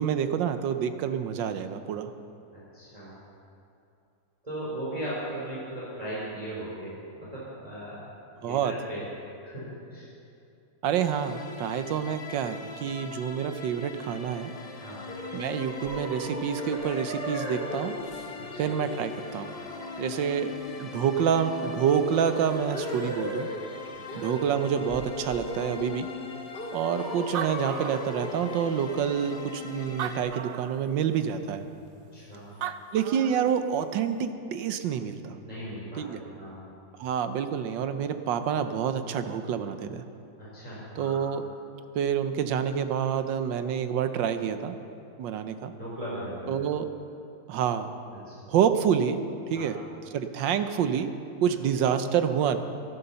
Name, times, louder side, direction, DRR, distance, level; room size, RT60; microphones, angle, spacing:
voice 1, 0.0-2.1 8.4-8.8 10.8-14.5 15.3-17.9 18.6-19.5 20.0-20.5 20.8-23.5 24.1-26.1 26.7-31.6 32.9-35.4 35.9-36.2 37.0-40.0 40.9-41.4 41.9-44.8 45.2-45.7 46.5-46.9 47.5-47.9 48.5-49.2 49.5-49.8 50.1-51.1 51.4-52.6, right 8 dB, 90° right, 9 dB, 1.5 m, -27 dB
voice 2, 2.5-3.1 4.4-8.0 8.4-9.0 9.4-10.1 14.8-15.0 18.5-18.6 24.1-24.3 32.1-32.5 35.4-36.6 40.4-41.2 45.8-46.5 48.3-48.4 49.5-49.7, right 1 dB, 20° right, -9 dB, 3.5 m, -38 dB
sound 1, 11.0-30.2, left 5 dB, 75° left, 0.3 m, -41 dB
sound 2, 15.1-23.6 24.1-24.5 24.8-26.1 26.5-30.3, left 1 dB, 35° left, 2.7 m, -38 dB
Animal, 26.9-27.0 27.2-28.6 29.2-29.3 29.9-30.9 32.3-32.4 32.6-33.6, right 10 dB, 70° right, 0.8 m, -36 dB
12.5 x 11.0 x 6.8 m, 2.6 s
omnidirectional pair, 2.0 m